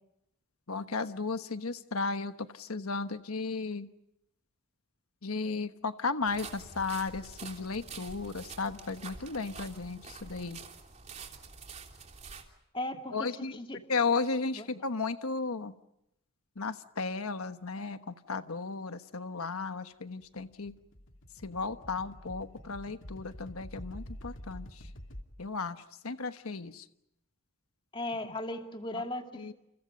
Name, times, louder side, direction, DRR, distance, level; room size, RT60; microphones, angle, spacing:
voice 1, 0.7-3.9 5.2-10.6 13.1-13.6 13.9-15.7 16.6-20.7 21.4-24.9 25.4-26.9 28.9-29.0 29.3-29.5, left 4 dB, 90° left, 9 dB, 1.3 m, -34 dB
sound 1, 6.3-12.4, right 4 dB, 30° right, 3.3 m, -47 dB
voice 2, 12.7-13.2 13.6-13.8 14.5-14.7 27.9-29.5, left 1 dB, 25° left, 5 dB, 2.4 m, -37 dB
sound 2, 20.2-25.2, equal, 60° left, 2.7 m, -47 dB
30.0 x 30.0 x 5.3 m, 0.84 s
head